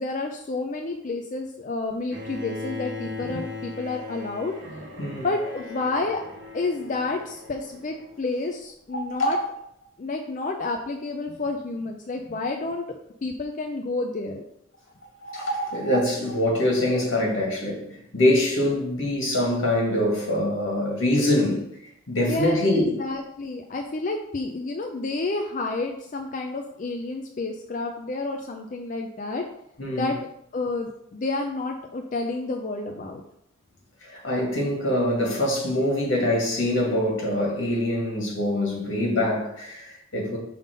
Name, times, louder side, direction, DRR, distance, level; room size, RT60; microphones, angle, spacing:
voice 1, 0.0-4.5 5.2-6.2 6.5-9.4 10.0-12.8 13.2-14.4 22.2-29.4 30.0-30.2 30.5-33.2, left 3 dB, 40° left, 2 dB, 0.4 m, -30 dB
Bowed string instrument, 2.1-8.2, left 3 dB, 60° right, 1.3 m, -38 dB
voice 2, 8.9-9.5 15.2-17.9 18.1-21.7 22.1-22.9 29.8-30.1 34.0-40.4, left 1 dB, 80° left, -2 dB, 2.0 m, -24 dB
5.7 x 3.6 x 5.2 m, 0.76 s
head